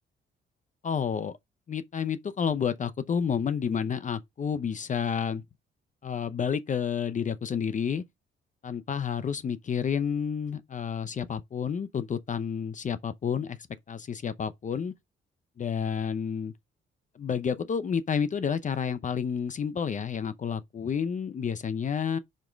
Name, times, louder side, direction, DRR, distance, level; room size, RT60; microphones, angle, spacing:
voice 1, 0.8-1.3 1.7-5.4 6.0-8.0 8.6-13.6 13.9-14.9 15.6-16.5 17.1-22.2, left 7 dB, 40° left, 0.7 m, -30 dB
5.2 x 3.6 x 5.1 m
cardioid pair, 90°, 20 cm